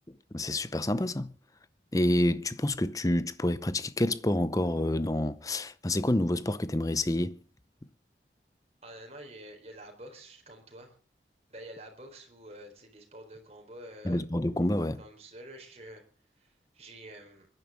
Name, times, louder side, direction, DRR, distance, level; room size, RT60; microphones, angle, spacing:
voice 1, 0.1-1.3 1.9-7.4 14.0-15.0, left 1 dB, 20° left, 0.7 m, -28 dB
voice 2, 8.8-11.0 11.5-14.2 15.0-16.0 16.4-17.5, right 1 dB, 35° right, 4.1 m, -48 dB
25.0 x 10.5 x 3.7 m
head